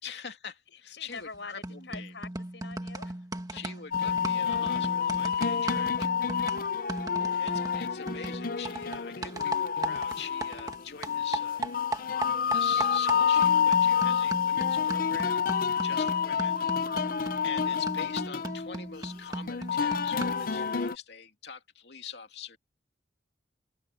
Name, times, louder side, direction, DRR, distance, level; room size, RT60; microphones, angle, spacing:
voice 1, 0.0-2.1 3.5-6.1 7.4-11.6 12.5-15.5 15.8-16.6 17.4-22.6, left 7 dB, 70° left, 2.8 m, -44 dB
voice 2, 0.7-3.3 3.5-3.6 7.2-7.8 15.7-16.1 16.9-17.2, left 4 dB, 90° left, 5.6 m, -47 dB
sound 1, 1.1-1.4 1.6-10.8 11.0-20.5, right 2 dB, 20° right, 1.8 m, -37 dB
sound 2, 3.9-20.9, left 7 dB, 50° left, 0.6 m, -28 dB
head